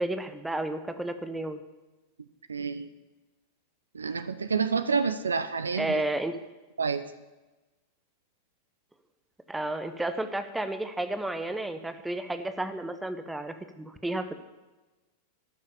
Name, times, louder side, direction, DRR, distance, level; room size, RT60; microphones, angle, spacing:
voice 1, 0.0-1.6 5.8-6.4 9.5-14.3, right 1 dB, 5° right, 9 dB, 0.8 m, -32 dB
voice 2, 2.5-2.9 3.9-6.0 6.8-7.0, right 5 dB, 75° right, 12 dB, 0.6 m, -28 dB
12.5 x 6.5 x 6.9 m, 1.1 s
figure-of-eight pair, 90°, 0 cm